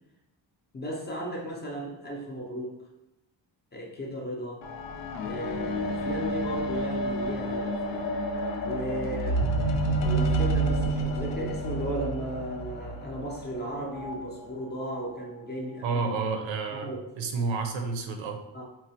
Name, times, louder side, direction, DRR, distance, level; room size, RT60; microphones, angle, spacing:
voice 1, 0.7-2.8 3.7-4.6 5.2-8.1 8.6-9.4 10.0-16.0 16.7-17.0 18.5-18.6, equal, 25° left, -2 dB, 0.4 m, -35 dB
sound 1, 4.6-14.1 14.9-15.0, right 1 dB, 75° left, 0.5 m, -29 dB
voice 2, 15.8-16.9 17.2-18.4, right 4 dB, 80° right, 5 dB, 0.6 m, -30 dB
3.9 x 2.0 x 2.7 m, 0.92 s
wide cardioid pair, 165°, 45 cm